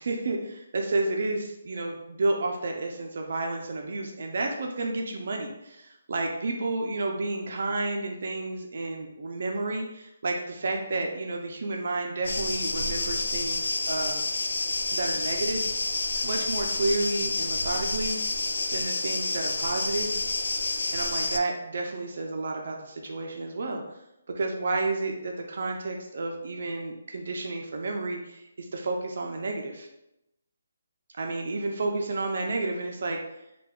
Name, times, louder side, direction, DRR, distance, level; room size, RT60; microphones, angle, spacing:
voice 1, 0.0-14.2 14.9-15.7 16.2-18.2 18.7-20.2 20.9-23.8 24.4-29.9 31.2-33.2, right 2 dB, 55° right, 2 dB, 0.4 m, -31 dB
sound 1, 12.2-21.4, left 3 dB, 85° left, 0.3 m, -29 dB
3.2 x 2.2 x 3.5 m, 0.87 s
hypercardioid pair, 170°, 0 cm